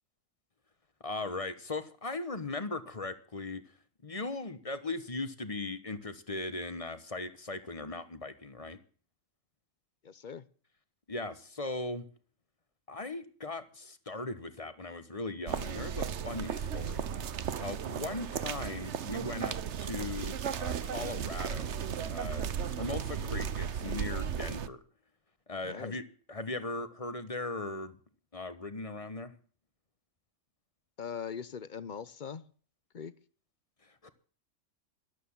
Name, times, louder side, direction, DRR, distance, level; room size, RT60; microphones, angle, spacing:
voice 1, 1.0-3.6 4.0-8.8 11.1-12.1 12.9-17.1 17.6-24.8 25.5-26.0 26.3-28.0 28.3-29.3 34.0-34.1, left 2 dB, 30° left, 12 dB, 1.2 m, -38 dB
voice 2, 10.0-10.4 23.1-23.5 25.6-26.0 31.0-32.5 32.9-33.1, left 7 dB, 45° left, 17 dB, 0.8 m, -41 dB
sound 1, 15.5-24.7, right 8 dB, 65° right, 1.1 m, -35 dB
13.0 x 12.0 x 7.2 m, 0.43 s
omnidirectional pair, 1.3 m